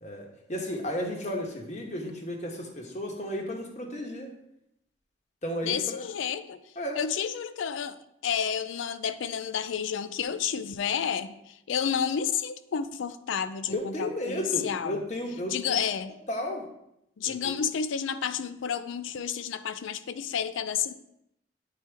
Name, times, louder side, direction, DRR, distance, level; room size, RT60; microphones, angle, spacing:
voice 1, 0.0-4.3 5.4-6.0 6.8-7.0 13.7-15.8 16.3-16.7 17.2-17.6, left 1 dB, 35° left, 1 dB, 1.0 m, -33 dB
voice 2, 5.6-6.6 6.9-15.0 15.5-16.1 17.2-20.9, left 7 dB, 80° left, 12 dB, 0.4 m, -30 dB
8.8 x 4.4 x 3.4 m, 0.80 s
head